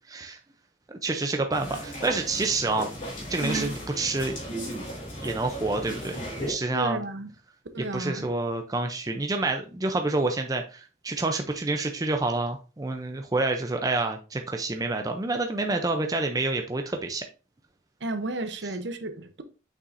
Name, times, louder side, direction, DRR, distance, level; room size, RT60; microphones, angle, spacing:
voice 1, 0.1-0.4 0.9-2.9 3.3-4.4 5.2-7.0 7.9-17.2, right 2 dB, 20° right, 0.4 m, -28 dB
sound 1, 1.5-6.5, equal, 40° left, 2.7 m, -36 dB
voice 2, 3.4-3.7 6.7-7.3 7.7-8.3 18.0-19.4, right 2 dB, 60° right, 0.8 m, -32 dB
6.7 x 5.7 x 2.6 m
head